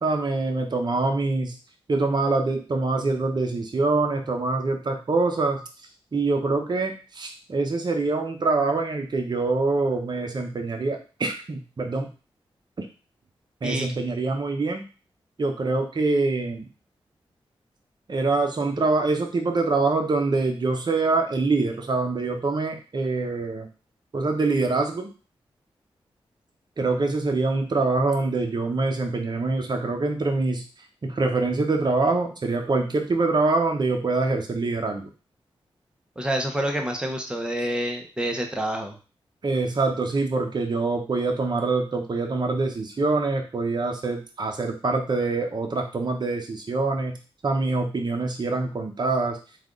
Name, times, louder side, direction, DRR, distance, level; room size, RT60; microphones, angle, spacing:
voice 1, 0.0-1.6 1.9-5.6 6.1-12.1 12.8-12.9 13.6-14.8 15.4-16.7 18.1-23.7 24.1-25.1 26.8-30.6 31.0-35.1 39.4-47.2 47.4-49.4, right 3 dB, 45° right, 4 dB, 0.8 m, -25 dB
voice 2, 36.2-39.0, right 1 dB, 10° right, 3 dB, 0.8 m, -27 dB
3.3 x 2.4 x 3.7 m, 0.35 s
cardioid pair, 70°, 10 cm